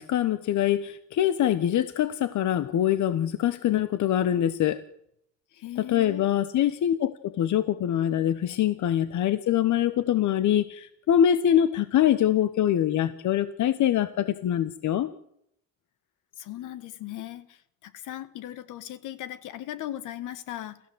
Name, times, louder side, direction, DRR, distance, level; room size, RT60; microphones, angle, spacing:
voice 1, 0.0-4.8 5.8-15.1, left 11 dB, 75° left, 14 dB, 1.2 m, -24 dB
voice 2, 5.5-6.3 16.4-20.8, left 13 dB, 90° left, 14 dB, 1.7 m, -38 dB
28.5 x 14.5 x 8.0 m, 0.74 s
cardioid pair, 90°, 30 cm